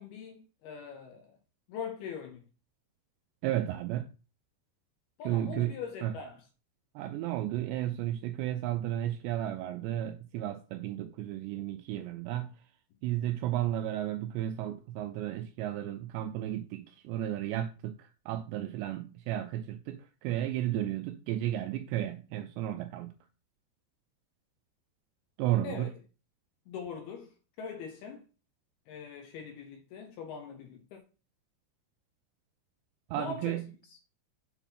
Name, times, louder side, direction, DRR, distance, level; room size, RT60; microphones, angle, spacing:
voice 1, 0.0-1.4 1.7-2.4 5.2-6.4 25.6-25.9 26.7-28.2 28.9-31.0 33.1-33.6 33.9-34.0, left 6 dB, 75° left, 2.5 m, -42 dB
voice 2, 3.4-4.1 5.2-5.7 6.0-6.2 7.0-12.5 13.0-23.2 25.4-25.9 33.1-33.7, right 12 dB, 85° right, 2.5 m, -33 dB
8.0 x 4.6 x 5.7 m
omnidirectional pair, 5.5 m